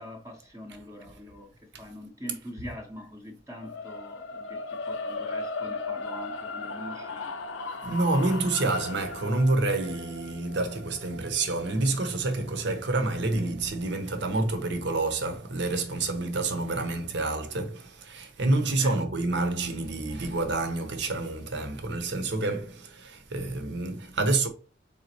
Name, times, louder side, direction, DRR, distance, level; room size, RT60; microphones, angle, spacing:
voice 1, 0.0-1.5 1.8-7.3 18.8-19.0, left 1 dB, 15° right, 0.7 m, -43 dB
sound 1, 3.6-13.8, left 3 dB, 80° left, 0.5 m, -37 dB
voice 2, 7.8-24.5, right 2 dB, 65° right, 0.9 m, -28 dB
4.1 x 3.7 x 2.9 m
head